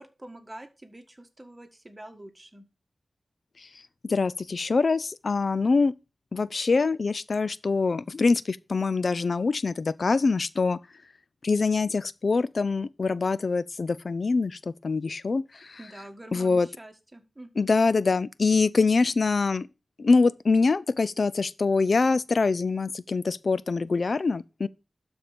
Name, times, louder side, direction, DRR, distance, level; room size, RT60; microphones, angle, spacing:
voice 1, 0.0-2.6 15.8-17.7, right 1 dB, 20° right, 1.6 m, -46 dB
voice 2, 4.0-5.9 6.3-10.8 11.4-15.8 16.3-16.7 17.6-19.7 20.0-24.7, left 4 dB, 65° left, 0.4 m, -24 dB
12.5 x 4.5 x 5.0 m
wide cardioid pair, 75°, 0 cm